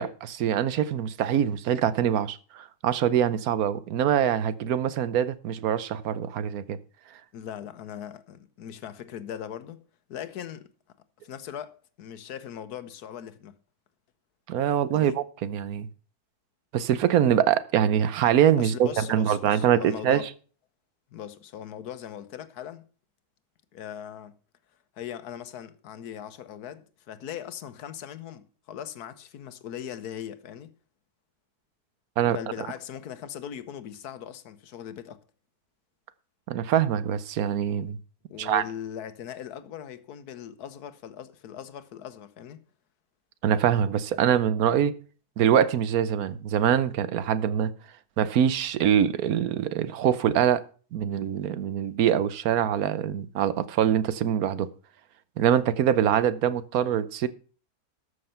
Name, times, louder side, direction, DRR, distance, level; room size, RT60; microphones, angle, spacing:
voice 1, 0.0-6.8 14.5-15.9 16.7-20.2 32.2-32.4 36.5-38.0 38.4-38.6 43.4-44.9 45.4-47.7 48.2-50.6 50.9-54.7 55.4-57.3, right 9 dB, 75° right, 1.2 m, -24 dB
voice 2, 7.3-9.8 10.1-10.7 11.2-13.6 14.9-15.2 18.6-20.3 21.1-22.8 23.7-24.4 25.0-30.7 32.3-35.2 38.3-42.6, left 9 dB, 85° left, 1.4 m, -39 dB
13.0 x 6.5 x 5.6 m
omnidirectional pair, 1.6 m